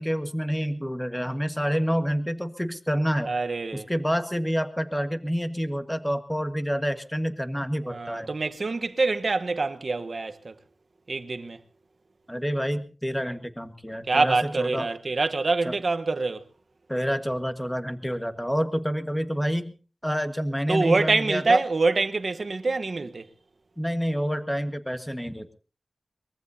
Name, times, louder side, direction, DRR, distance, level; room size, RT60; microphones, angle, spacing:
voice 1, 0.0-3.3 3.7-8.3 12.3-14.9 15.6-15.7 16.9-19.7 20.0-21.6 23.8-25.6, equal, 5° left, 1.5 m, -28 dB
voice 2, 3.3-3.9 7.9-10.5 11.1-11.6 14.1-16.4 20.7-23.3, right 3 dB, 60° right, 1.1 m, -25 dB
23.0 x 22.0 x 2.8 m
wide cardioid pair, 85°, 0 cm